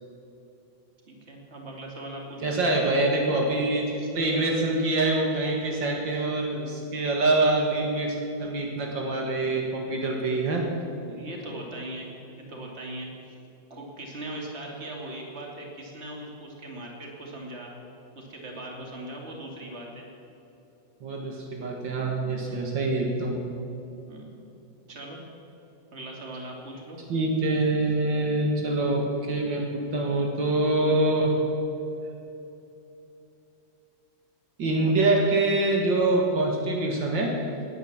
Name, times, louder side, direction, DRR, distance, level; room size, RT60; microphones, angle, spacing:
voice 1, 1.1-2.7 11.1-12.1 12.4-13.1 13.7-17.7 18.2-20.1 22.4-22.6 24.1-24.3 24.9-25.2 25.9-27.0 34.7-35.1, right 1 dB, 35° right, -1 dB, 2.8 m, -39 dB
voice 2, 2.4-10.7 21.0-23.4 27.1-31.4 34.6-37.4, right 2 dB, 75° right, 0 dB, 2.4 m, -25 dB
18.5 x 9.9 x 7.4 m, 2.8 s
omnidirectional pair, 2.0 m